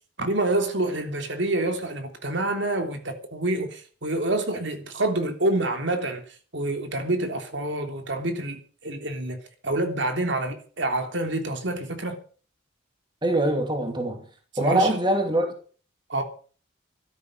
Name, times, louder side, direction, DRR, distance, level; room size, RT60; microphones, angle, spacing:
voice 1, 0.2-6.2 6.5-9.4 9.6-12.2 14.6-15.0 16.1-16.2, right 2 dB, 65° right, 3.3 m, -27 dB
voice 2, 13.2-14.2 14.6-15.5, right 1 dB, 25° right, 2.7 m, -23 dB
14.0 x 13.0 x 6.6 m
head